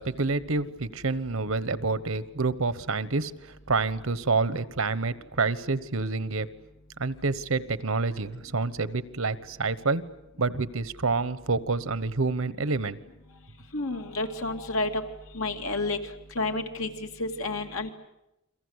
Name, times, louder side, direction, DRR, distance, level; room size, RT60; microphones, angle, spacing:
voice 1, 0.0-6.5 7.0-10.0 10.4-13.0, right 3 dB, 80° right, 15 dB, 1.2 m, -28 dB
voice 2, 13.7-15.0 15.3-16.0 16.3-17.9, left 2 dB, 85° left, 5 dB, 2.5 m, -30 dB
29.5 x 23.0 x 8.1 m, 0.91 s
head